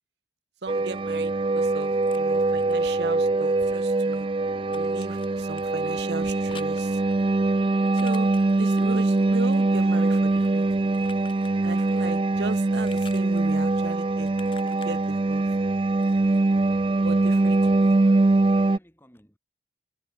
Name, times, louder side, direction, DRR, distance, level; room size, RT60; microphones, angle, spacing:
voice 1, 0.6-4.3 4.7-7.0 7.9-10.9 11.6-14.3 14.7-15.4 17.0-17.6, right 3 dB, 70° right, 0.9 m, -37 dB
sound 1, 0.7-18.8, right 2 dB, 30° right, 0.4 m, -23 dB
sound 2, 1.6-3.7 4.0-12.2 12.4-16.4, left 6 dB, 30° left, 2.3 m, -51 dB
voice 2, 17.2-19.4, equal, 10° left, 4.4 m, -55 dB
head